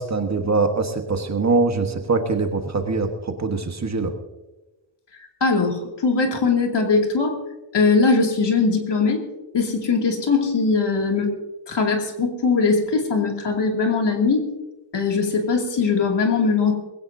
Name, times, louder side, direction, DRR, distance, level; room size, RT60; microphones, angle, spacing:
voice 1, 0.0-4.1, right 3 dB, 35° right, 5 dB, 1.4 m, -23 dB
voice 2, 5.4-7.4 7.7-9.2 9.5-11.3 11.7-14.5 14.9-16.7, left 4 dB, 65° left, 1 dB, 2.6 m, -20 dB
20.5 x 16.5 x 2.7 m, 1.1 s
wide cardioid pair, 165°, 46 cm